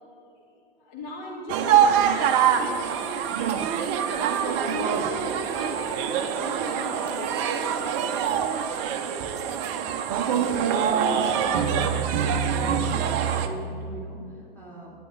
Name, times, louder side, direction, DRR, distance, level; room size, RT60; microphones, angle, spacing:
voice 1, 0.8-3.6 4.2-8.2 10.2-12.3, equal, 40° left, -2 dB, 1.5 m, -37 dB
sound 1, 1.5-13.5, right 8 dB, 30° right, 0.6 m, -24 dB
voice 2, 12.6-14.9, right 2 dB, 5° left, -5 dB, 2.9 m, -41 dB
12.0 x 9.7 x 3.9 m, 2.6 s
figure-of-eight pair, 100°, 29 cm